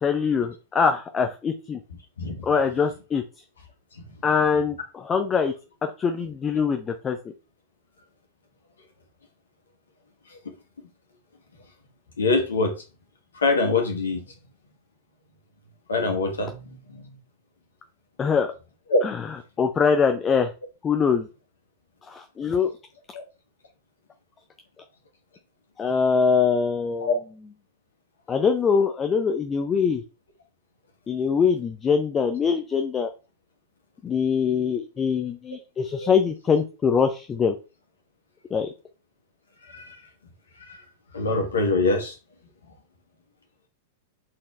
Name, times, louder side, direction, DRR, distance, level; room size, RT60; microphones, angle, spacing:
voice 1, 0.0-1.8 2.4-3.2 4.2-5.5 5.8-7.2 18.2-18.5 19.0-19.1 19.6-20.5 20.8-21.3 22.1-22.7 25.8-27.1 28.3-30.0 31.1-33.1 34.0-37.5 38.5-38.7, left 6 dB, 20° left, 0.7 m, -23 dB
voice 2, 12.2-12.7 13.3-14.3 15.9-17.2 18.9-19.0 23.1-23.2 27.0-27.2 36.0-36.1 39.6-40.1 40.6-40.8 41.1-42.2, left 3 dB, 70° left, 1.8 m, -25 dB
7.5 x 4.3 x 3.3 m
figure-of-eight pair, 95°, 0 cm